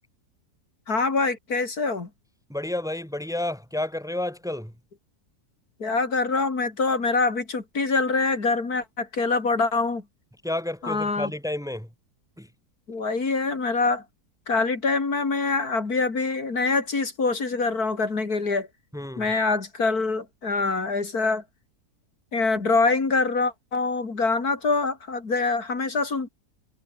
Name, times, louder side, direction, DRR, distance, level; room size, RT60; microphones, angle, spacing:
voice 1, 0.9-2.1 5.8-10.0 10.8-11.3 12.9-14.0 14.5-18.7 19.2-21.4 22.3-26.3, left 3 dB, 65° left, 3.6 m, -25 dB
voice 2, 2.5-4.7 10.4-11.9 12.4-12.5 18.9-19.3, left 1 dB, ahead, 3.0 m, -30 dB
omnidirectional pair, 1.7 m